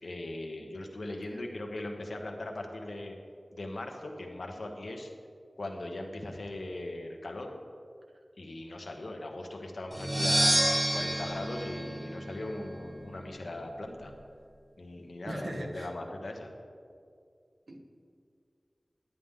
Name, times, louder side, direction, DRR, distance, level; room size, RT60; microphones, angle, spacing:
voice 1, 0.0-3.1 3.5-5.1 5.6-7.5 8.4-14.1 14.8-16.5, left 1 dB, 80° left, 2 dB, 1.1 m, -39 dB
sound 1, 9.9-12.8, right 1 dB, 25° right, 0.6 m, -29 dB
voice 2, 15.3-15.9 17.7-17.9, right 1 dB, 75° right, 2 dB, 1.2 m, -39 dB
10.5 x 9.6 x 3.7 m, 2.2 s
wide cardioid pair, 40°, 0 cm